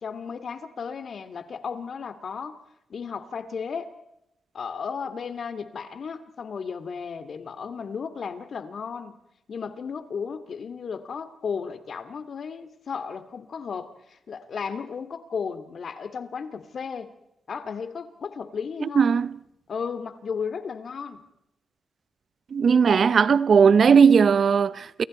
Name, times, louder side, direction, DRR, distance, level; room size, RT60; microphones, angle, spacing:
voice 1, 0.0-2.6 2.9-3.9 4.5-9.1 9.5-17.1 17.5-19.1 19.7-21.2, left 6 dB, 60° left, 2.6 m, -34 dB
voice 2, 19.0-19.3 22.5-25.0, right 6 dB, 55° right, 0.8 m, -18 dB
29.0 x 25.0 x 4.5 m
cardioid pair, 85°, 0 cm